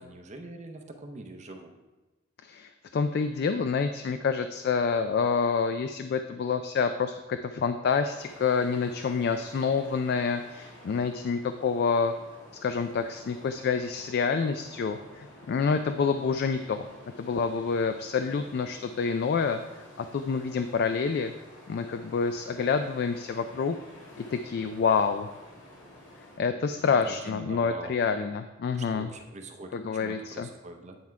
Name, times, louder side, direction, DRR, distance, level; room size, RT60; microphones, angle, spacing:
voice 1, 0.0-1.7 26.6-28.0 28.7-31.0, right 2 dB, 35° right, 5 dB, 0.7 m, -44 dB
voice 2, 2.4-12.1 12.6-16.9 17.2-19.6 20.0-21.3 21.7-23.8 24.2-25.3 26.4-29.1 29.7-30.5, left 5 dB, 55° left, 8 dB, 0.3 m, -27 dB
sound 1, 8.0-26.4, left 1 dB, 90° left, 2.2 m, -50 dB
9.5 x 3.6 x 4.5 m, 1.1 s
head